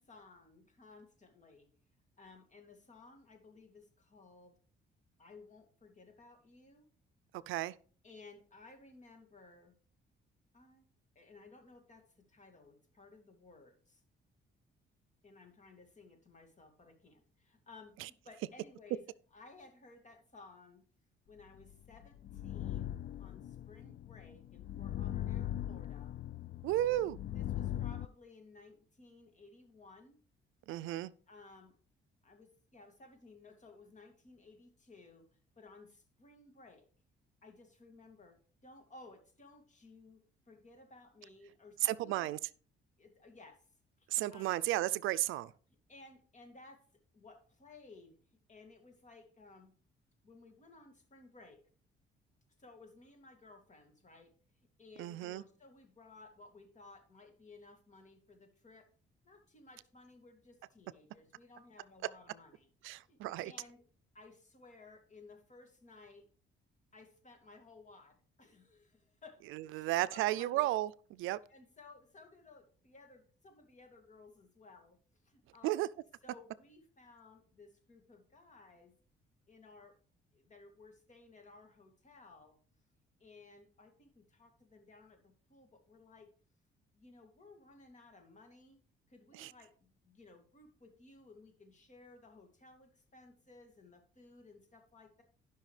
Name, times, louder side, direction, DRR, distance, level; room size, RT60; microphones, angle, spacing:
voice 1, 0.0-1.7 2.2-4.6 5.2-6.9 8.0-9.8 10.5-14.0 15.2-19.0 19.3-20.8 21.3-26.2 26.8-27.0 27.4-30.2 31.3-31.7 32.2-35.3 35.6-36.9 37.4-42.3 43.0-43.6 44.0-44.5 45.9-46.8 47.1-48.2 48.5-49.7 50.2-51.6 52.6-54.3 54.8-58.9 59.2-63.8 64.1-66.2 66.9-70.7 71.5-75.0 75.2-75.8 76.2-78.9 79.5-80.0 80.3-82.6 83.2-86.3 86.9-95.2, left 3 dB, 35° left, 2.4 m, -58 dB
voice 2, 7.3-7.7 18.0-18.1 26.6-27.2 30.7-31.1 41.8-42.4 44.1-45.5 55.0-55.4 62.8-63.5 69.5-71.4 75.6-75.9 89.3-89.5, right 15 dB, 90° right, 0.4 m, -33 dB
sound 1, 21.6-28.1, left 12 dB, 55° left, 0.4 m, -40 dB
15.5 x 5.6 x 3.2 m
cardioid pair, 90°, 20 cm